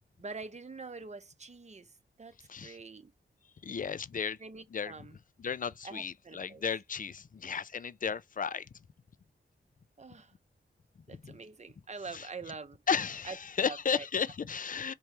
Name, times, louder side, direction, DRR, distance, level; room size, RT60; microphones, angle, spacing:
voice 1, 0.2-1.9 2.2-2.3 2.6-3.1 4.4-5.1 5.8-6.6 10.0-10.3 11.1-12.8 13.2-13.4 13.6-14.1, right 4 dB, 35° right, 0.7 m, -45 dB
voice 2, 3.6-4.4 4.7-5.1 5.4-8.7 11.1-11.4 12.1-12.3 12.9-14.9, left 6 dB, 40° left, 0.4 m, -34 dB
4.5 x 2.7 x 3.2 m
cardioid pair, 55°, 20 cm